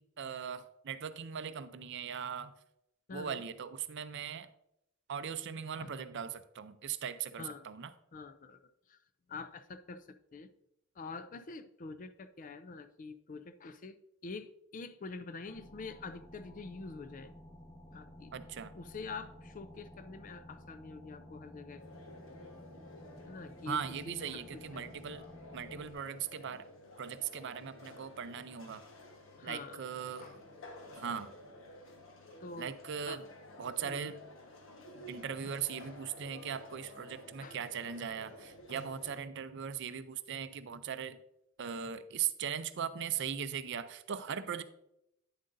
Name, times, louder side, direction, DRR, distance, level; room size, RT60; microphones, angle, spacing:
voice 1, 0.0-2.5 3.1-4.5 5.1-7.9 18.3-18.7 23.7-25.3 25.5-26.7 27.0-28.8 29.4-30.4 31.0-31.3 32.6-33.3 33.6-34.2 35.1-41.2 41.6-44.6, right 7 dB, 55° right, 12 dB, 0.5 m, -39 dB
voice 2, 3.1-3.4 5.8-5.9 7.4-7.7 8.1-9.0 9.3-10.5 11.0-14.0 14.2-17.3 17.9-18.3 18.7-21.8 23.2-23.8 24.1-24.9 29.4-29.8 30.2-30.4 32.4-32.7 33.1-33.2 33.8-34.1 35.4-35.5 37.4-37.6, left 4 dB, 40° left, 12 dB, 0.4 m, -46 dB
sound 1, 15.5-25.9, left 1 dB, 15° left, 1.1 m, -53 dB
sound 2, 21.8-39.2, left 1 dB, 65° left, 1.3 m, -53 dB
9.5 x 7.5 x 2.6 m, 0.83 s
head